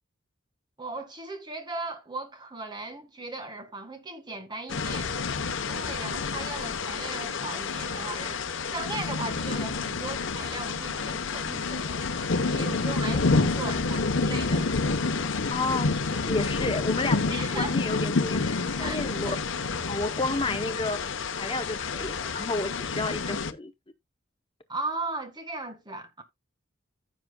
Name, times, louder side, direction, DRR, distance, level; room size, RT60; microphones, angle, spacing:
voice 1, 0.8-5.1 5.6-12.0 12.5-14.7 17.3-17.8 18.8-19.4 24.7-26.2, right 3 dB, 20° right, 1.7 m, -37 dB
sound 1, 4.7-23.5, left 4 dB, 70° left, 0.9 m, -29 dB
voice 2, 15.5-19.4 19.9-21.0 21.4-23.7, left 2 dB, 25° left, 0.7 m, -31 dB
15.0 x 6.0 x 2.2 m
head